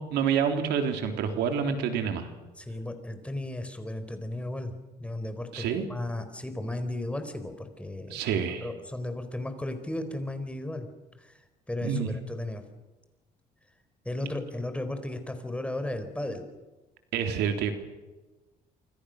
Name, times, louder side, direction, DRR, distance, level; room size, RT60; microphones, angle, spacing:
voice 1, 0.0-2.3 5.5-5.9 8.1-8.7 11.8-12.1 17.1-17.7, right 7 dB, 80° right, 6 dB, 3.5 m, -28 dB
voice 2, 2.6-4.7 5.0-8.2 8.6-10.9 11.2-11.3 11.7-12.6 14.0-16.5, left 1 dB, 5° left, 8 dB, 4.3 m, -35 dB
28.0 x 25.0 x 6.6 m, 1.1 s
cardioid pair, 110°, 17 cm